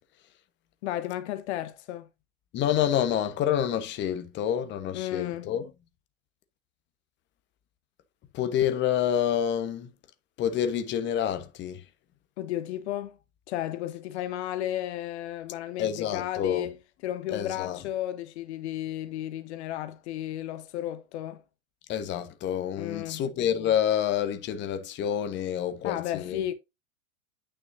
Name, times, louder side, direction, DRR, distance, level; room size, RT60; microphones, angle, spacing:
voice 1, 0.8-2.1 4.9-5.5 12.4-13.2 13.5-16.7 17.0-21.4 22.8-23.2 25.8-26.5, left 12 dB, 50° left, 1.0 m, -33 dB
voice 2, 2.5-5.7 8.3-9.9 10.4-11.8 15.8-16.7 17.3-17.8 21.9-26.4, left 9 dB, 25° left, 1.2 m, -28 dB
9.1 x 6.2 x 2.6 m
hypercardioid pair, 115°, 42 cm